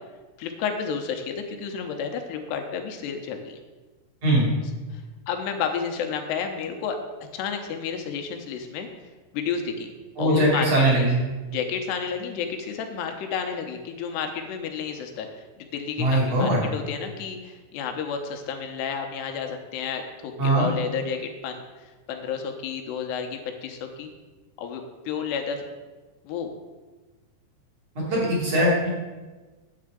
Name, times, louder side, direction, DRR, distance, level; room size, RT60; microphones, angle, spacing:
voice 1, 0.4-3.6 4.9-5.0 5.3-7.0 7.3-8.9 9.3-9.9 10.2-11.1 11.5-24.1 24.6-25.6 26.2-26.5, left 6 dB, 85° left, 4 dB, 3.0 m, -31 dB
voice 2, 10.2-11.2 16.0-16.6 20.4-20.7 27.9-28.9, right 1 dB, 40° right, -5 dB, 3.5 m, -21 dB
9.5 x 7.9 x 5.0 m, 1.3 s
omnidirectional pair, 4.8 m